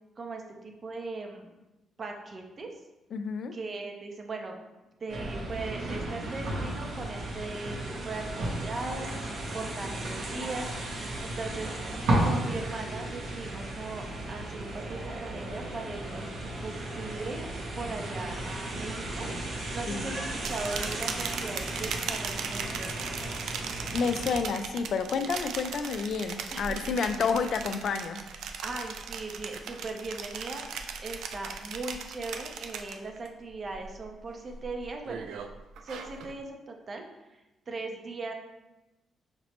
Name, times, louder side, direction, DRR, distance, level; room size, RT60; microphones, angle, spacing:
voice 1, 0.2-1.5 2.0-2.7 3.5-4.6 5.0-11.8 12.2-17.5 17.8-23.0 26.5-27.0 28.6-35.3 35.8-37.1 37.7-38.3, right 3 dB, 35° right, 2 dB, 0.6 m, -39 dB
voice 2, 3.1-3.5 19.9-20.1 23.9-28.2, left 5 dB, 60° left, 8 dB, 0.3 m, -30 dB
sound 1, 5.1-24.4, right 1 dB, 65° right, 0.9 m, -34 dB
sound 2, 20.3-33.3 33.6-34.1 34.5-36.4, right 6 dB, 80° right, 0.3 m, -38 dB
5.8 x 2.0 x 2.9 m, 1.0 s
cardioid pair, 115°, 0 cm